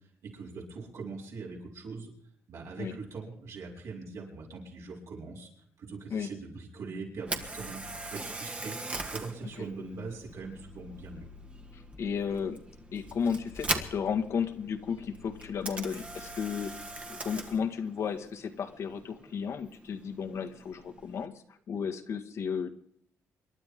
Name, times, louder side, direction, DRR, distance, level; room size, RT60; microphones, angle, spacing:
voice 1, 0.2-2.1 2.5-5.5 5.8-8.8 9.1-11.3, right 4 dB, 65° right, -2 dB, 6.7 m, -42 dB
Camera, 7.2-21.3, right 2 dB, 25° right, 2.0 m, -41 dB
sound 1, 7.3-17.6, left 5 dB, 75° left, 3.7 m, -54 dB
voice 2, 11.7-12.6 12.9-16.7 17.1-21.3 21.7-22.7, left 6 dB, 60° left, 4 dB, 2.0 m, -33 dB
27.5 x 12.0 x 3.8 m, 0.65 s
cardioid pair, 110°, 5 cm